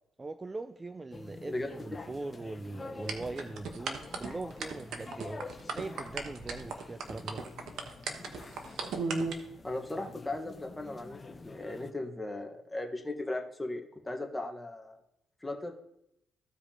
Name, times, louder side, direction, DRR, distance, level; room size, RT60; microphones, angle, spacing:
voice 1, 0.2-5.5 5.7-7.4, right 2 dB, 25° right, 10 dB, 0.3 m, -41 dB
sound 1, 1.1-11.9, left 3 dB, 30° left, 0.8 m, -48 dB
sound 2, 3.1-9.3, right 4 dB, 70° right, 1.0 m, -35 dB
voice 2, 9.6-15.0 15.4-15.7, left 2 dB, 10° left, 2 dB, 1.2 m, -37 dB
15.0 x 5.0 x 2.8 m, 0.80 s
cardioid pair, 90°, 0 cm